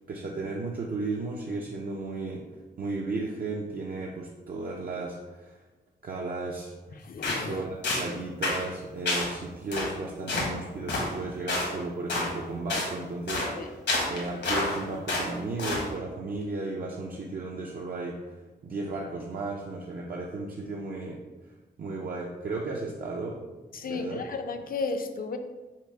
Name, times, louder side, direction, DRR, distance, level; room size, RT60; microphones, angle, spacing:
voice 1, 0.1-2.4 2.8-5.6 6.0-7.0 7.5-13.8 14.1-18.2 18.6-21.2 21.8-23.4 23.8-24.2, right 3 dB, 55° right, -2 dB, 0.5 m, -34 dB
voice 2, 7.0-7.6 13.6-13.7 23.7-25.4, left 4 dB, 55° left, 6 dB, 0.5 m, -33 dB
sound 1, 7.2-7.5 7.8-8.1 8.4-8.6 9.1-9.3 9.7-9.9 10.3-10.5 10.9-11.1 11.5-11.7 12.1-12.3 12.7-12.9 13.3-13.5 13.9-14.8 15.1-15.3 15.6-15.9, left 2 dB, 80° left, 1.2 m, -28 dB
5.7 x 2.0 x 4.5 m, 1.2 s
wide cardioid pair, 145°, 18 cm